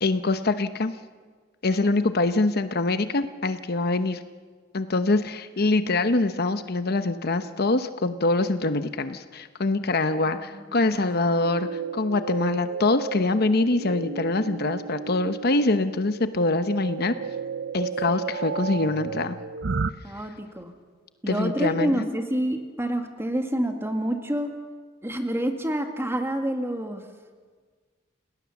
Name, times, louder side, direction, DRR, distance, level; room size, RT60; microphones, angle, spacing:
voice 1, 0.0-0.9 1.6-4.2 4.7-17.1 17.7-19.4 21.3-22.0, left 2 dB, 55° left, 10 dB, 0.9 m, -24 dB
voice 2, 10.2-11.0 18.1-18.4 20.0-20.7 21.2-24.5 25.0-27.0, right 1 dB, 15° right, 5 dB, 1.9 m, -28 dB
sound 1, 11.4-19.9, right 5 dB, 65° right, 0.6 m, -33 dB
29.5 x 18.0 x 7.1 m, 1.5 s
head